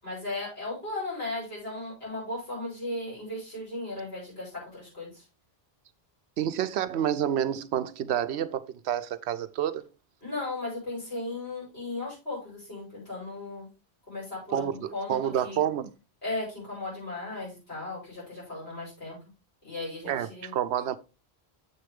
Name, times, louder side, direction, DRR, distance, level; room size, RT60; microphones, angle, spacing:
voice 1, 0.0-5.2 10.2-13.7 14.1-15.6 16.2-19.2 19.6-20.5, left 2 dB, 70° left, 5.9 m, -36 dB
voice 2, 6.4-9.8 14.5-15.9 20.0-21.0, right 10 dB, 85° right, 0.9 m, -29 dB
7.3 x 6.7 x 3.6 m
omnidirectional pair, 1.1 m